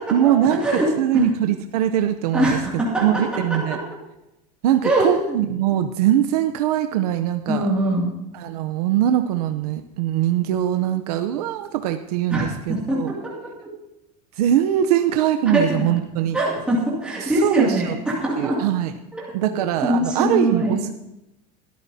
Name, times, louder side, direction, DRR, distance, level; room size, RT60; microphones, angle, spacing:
voice 1, 0.1-3.8 4.6-7.7 8.3-13.1 14.4-16.4 17.2-18.0 18.4-18.9 19.3-20.9, right 11 dB, 80° right, 8 dB, 0.7 m, -22 dB
voice 2, 2.3-3.2 3.5-3.8 4.8-5.4 7.5-8.1 12.3-13.3 15.5-15.6 16.3-18.6 19.1-19.5 19.8-20.8, right 1 dB, 5° right, -6 dB, 2.4 m, -22 dB
21.0 x 13.5 x 2.8 m, 0.91 s
supercardioid pair, 175°, 19 cm